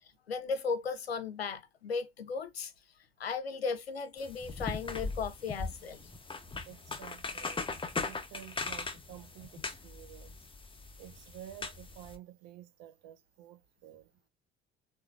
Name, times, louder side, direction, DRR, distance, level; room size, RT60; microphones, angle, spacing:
voice 1, 0.3-2.7 3.2-6.0, left 5 dB, 85° left, 0.5 m, -36 dB
sound 1, 4.2-12.2, left 4 dB, 15° left, 0.8 m, -40 dB
voice 2, 6.5-7.7 8.0-10.5 11.0-14.1, right 12 dB, 60° right, 0.7 m, -51 dB
3.7 x 2.6 x 2.3 m
figure-of-eight pair, 50°, 30 cm